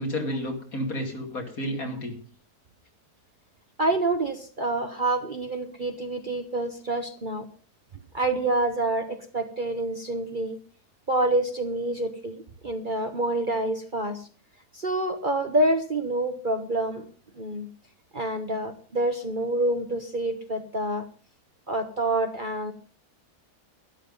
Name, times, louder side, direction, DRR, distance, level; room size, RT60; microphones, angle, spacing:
voice 1, 0.0-2.2, equal, 60° left, 3 dB, 3.0 m, -31 dB
voice 2, 3.8-7.5 8.1-10.6 11.1-14.3 14.7-17.0 17.4-17.7 18.1-21.1 21.7-22.7, right 2 dB, 35° right, 7 dB, 1.1 m, -27 dB
12.5 x 11.5 x 5.4 m, 0.40 s
omnidirectional pair, 1.7 m